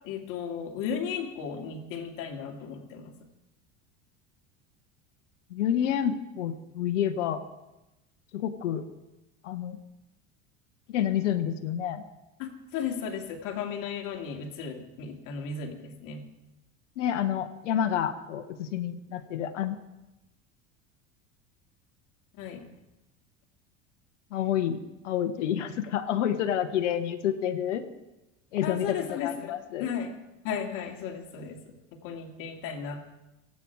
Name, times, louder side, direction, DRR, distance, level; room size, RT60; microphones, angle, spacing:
voice 1, 0.0-3.1 12.4-16.2 22.4-22.6 28.6-29.5 29.8-30.1 30.4-33.0, left 7 dB, 60° left, 3 dB, 2.6 m, -35 dB
voice 2, 5.5-7.4 8.3-8.9 9.4-9.8 10.9-12.0 17.0-19.8 24.3-24.8 25.0-27.8 28.5-29.0 29.2-29.9, left 10 dB, 80° left, 9 dB, 1.2 m, -29 dB
25.0 x 8.7 x 4.8 m, 0.98 s
hypercardioid pair, 85°, 36 cm